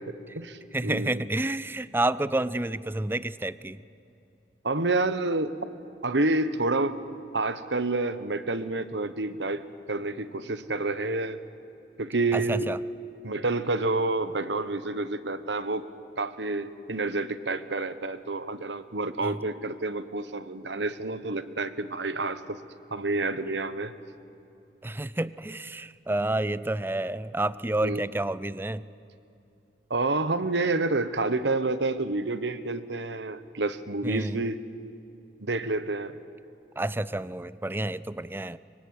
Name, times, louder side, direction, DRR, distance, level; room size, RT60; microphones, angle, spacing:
voice 1, 0.0-1.3 4.6-5.6 6.0-7.0 7.3-11.4 12.0-12.7 13.2-15.9 16.2-22.6 22.9-23.9 27.8-28.0 29.9-34.6 35.4-36.2, right 2 dB, 75° right, 12 dB, 1.2 m, -29 dB
voice 2, 0.7-3.8 12.3-12.8 19.2-19.4 24.8-28.9 34.0-34.4 36.8-38.6, right 2 dB, 10° right, 17 dB, 0.5 m, -29 dB
24.0 x 23.5 x 9.6 m, 2.7 s
head